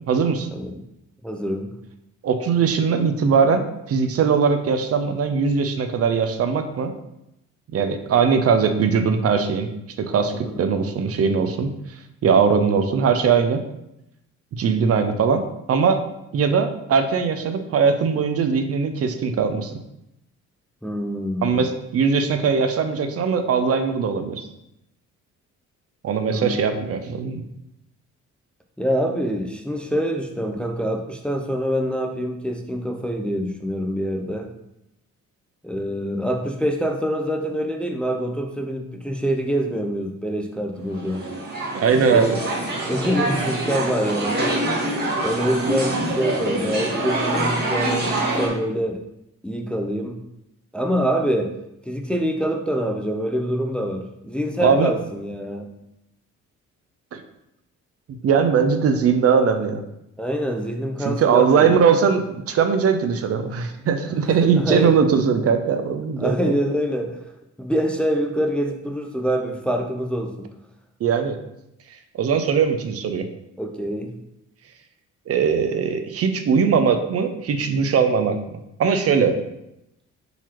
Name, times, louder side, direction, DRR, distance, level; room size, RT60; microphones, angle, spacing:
voice 1, 0.1-0.5 2.2-3.6 3.9-6.9 7.7-9.7 10.0-11.7 12.2-13.6 14.6-16.0 16.3-19.8 21.4-24.4 26.0-27.4 41.7-42.4 54.6-54.9 57.1-57.2 58.2-59.8 61.0-66.5 71.0-71.4 72.1-73.3 75.3-79.4, right 6 dB, 50° right, 7 dB, 0.5 m, -20 dB
voice 2, 1.2-1.7 10.3-10.5 20.8-21.7 26.3-26.6 28.8-34.5 35.6-41.3 42.1-42.3 42.9-44.5 45.2-49.0 49.4-50.2 50.7-51.5 51.9-55.7 60.2-61.8 64.4-64.9 66.2-67.2 67.6-70.5 73.6-74.2, equal, 5° left, 3 dB, 0.4 m, -25 dB
sound 1, 40.9-48.5, right 1 dB, 35° right, 1.5 m, -25 dB
4.0 x 3.0 x 4.4 m, 0.84 s
cardioid pair, 90°, 30 cm